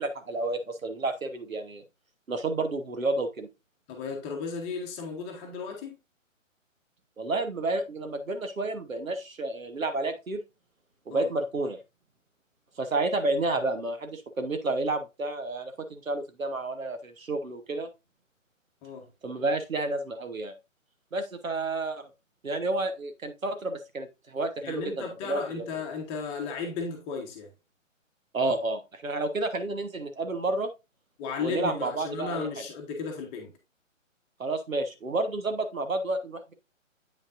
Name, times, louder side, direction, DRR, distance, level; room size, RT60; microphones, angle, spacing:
voice 1, 0.0-1.8 2.3-3.5 7.2-10.4 11.1-11.8 12.8-17.9 19.2-20.5 21.1-22.1 22.4-25.7 28.3-30.7 31.4-32.6 34.4-36.5, right 2 dB, 85° right, 1.3 m, -30 dB
voice 2, 3.9-5.9 11.1-11.3 18.8-19.1 24.6-27.5 31.2-33.5, left 5 dB, 15° left, 1.0 m, -35 dB
8.4 x 5.5 x 2.5 m
figure-of-eight pair, 145°, 39 cm